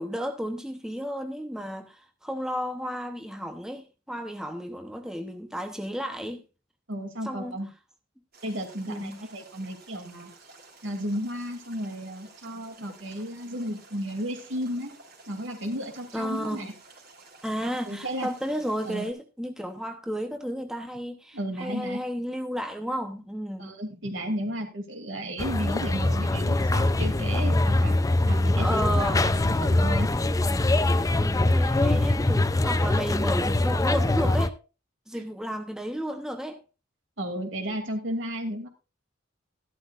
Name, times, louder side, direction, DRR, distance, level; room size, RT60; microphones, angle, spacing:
voice 1, 0.0-6.4 7.2-7.6 8.9-9.2 16.1-16.7 17.4-23.7 28.6-29.2 31.1-34.6 35.1-36.6, equal, 5° right, 0.8 m, -33 dB
voice 2, 6.9-7.7 8.4-10.3 10.8-14.9 15.3-16.7 17.9-18.3 18.8-19.1 21.3-22.0 23.6-28.0 28.2-30.1 35.1-35.2 37.2-38.7, equal, 70° right, 2.6 m, -33 dB
sound 1, 8.3-19.1, right 3 dB, 50° right, 3.0 m, -53 dB
sound 2, 25.4-34.5, left 2 dB, 15° left, 0.4 m, -23 dB
13.5 x 12.0 x 2.5 m
head